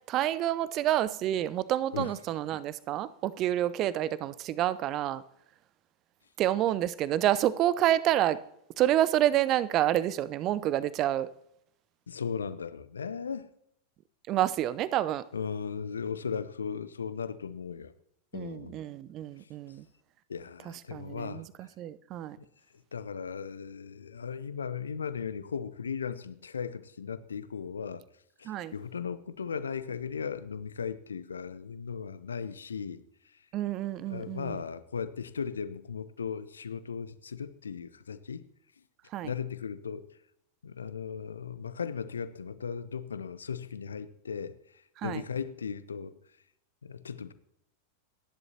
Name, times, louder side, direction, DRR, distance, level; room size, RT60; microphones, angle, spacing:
voice 1, 0.1-5.2 6.4-8.4 8.8-11.3 14.3-15.2 18.3-19.8 20.9-22.4 28.4-28.7 33.5-34.6 39.1-39.3 45.0-45.2, right 12 dB, 35° right, 0.7 m, -28 dB
voice 2, 12.1-13.5 15.3-17.9 18.3-18.8 20.3-21.7 22.4-22.5 22.9-28.0 28.4-33.0 34.0-38.5 39.2-40.0 40.6-44.5 45.0-46.1 46.8-47.3, left 6 dB, 70° left, 0.8 m, -37 dB
27.5 x 11.0 x 2.9 m
figure-of-eight pair, 90°, 0 cm